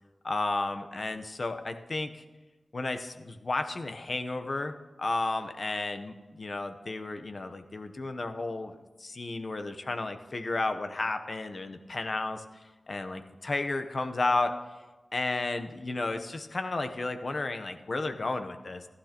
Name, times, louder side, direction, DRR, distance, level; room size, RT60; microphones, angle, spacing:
voice 1, 0.2-2.2 2.7-8.7 9.0-12.4 12.9-14.5 15.1-18.9, left 2 dB, 55° left, 7 dB, 0.9 m, -32 dB
14.5 x 12.5 x 3.0 m, 1.2 s
wide cardioid pair, 65°, 0 cm